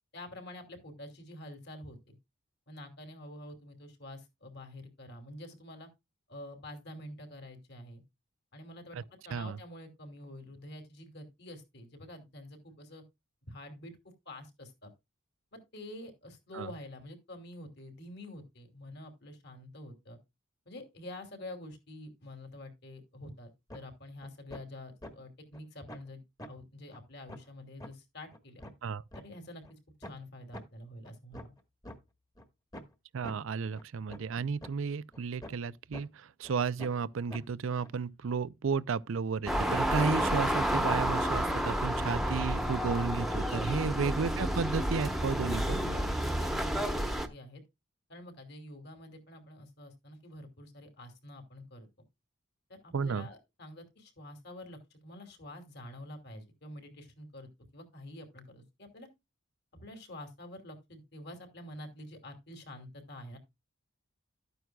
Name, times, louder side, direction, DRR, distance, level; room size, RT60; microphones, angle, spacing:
voice 1, 0.1-2.2 2.7-5.9 6.3-8.0 8.5-9.0 9.2-13.0 13.5-14.0 14.2-14.9 15.5-20.2 20.7-26.2 26.5-28.6 29.1-31.5 43.7-43.9 45.9-47.6 48.1-51.9 52.7-59.1 59.8-63.4, left 1 dB, 50° left, 2.9 m, -47 dB
sound 1, 23.7-23.8 24.2-24.6 25.0-25.1 25.5-25.6 25.9-26.1 26.4-26.5 26.9-27.0 27.3-27.4 27.8-27.9 28.3-29.2 29.6-29.7 30.0-30.2 30.5-30.6 31.0-32.0 32.4-32.5 32.7-32.9 33.2-33.4 33.8-33.9 34.1-34.3 34.6-34.7 35.1-35.7 35.9-36.0 36.4-36.5 36.8-37.0 37.3-37.4 37.8-37.9, left 1 dB, 20° left, 1.5 m, -45 dB
voice 2, 33.1-45.8 52.9-53.3, right 5 dB, 70° right, 0.5 m, -33 dB
sound 2, 39.5-47.3, equal, ahead, 1.1 m, -30 dB
12.5 x 9.2 x 2.3 m
head